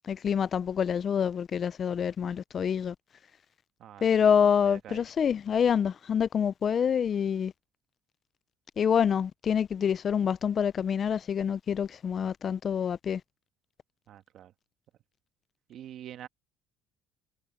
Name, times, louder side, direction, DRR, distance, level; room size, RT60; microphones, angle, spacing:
voice 1, 0.0-2.9 4.0-7.5 8.8-13.2, left 7 dB, 35° left, 0.4 m, -26 dB
voice 2, 3.8-5.0 14.1-14.5 15.7-16.3, right 11 dB, 55° right, 1.5 m, -46 dB
cardioid pair, 140°, 0 cm